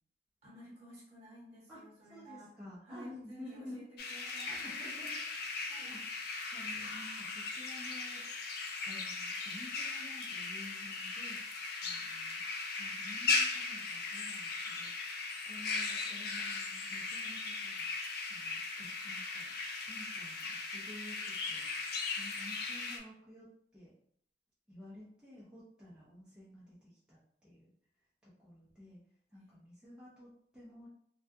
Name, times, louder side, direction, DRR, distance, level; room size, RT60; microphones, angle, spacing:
voice 1, 0.4-2.5 2.8-3.9 4.1-4.7 5.7-6.0 11.8-12.1 22.1-22.3 29.3-29.6, right 1 dB, 35° right, -5 dB, 1.0 m, -53 dB
voice 2, 1.7-3.8 4.5-8.3 8.8-11.4 11.8-15.2 15.5-17.9 18.3-19.5 19.8-21.9 22.2-23.5 23.7-23.9 24.7-27.7 28.2-29.0 29.3-30.9, left 1 dB, 5° right, -9 dB, 0.5 m, -52 dB
sound 1, 4.0-23.0, left 4 dB, 60° left, 0.4 m, -38 dB
2.3 x 2.2 x 2.6 m, 0.65 s
head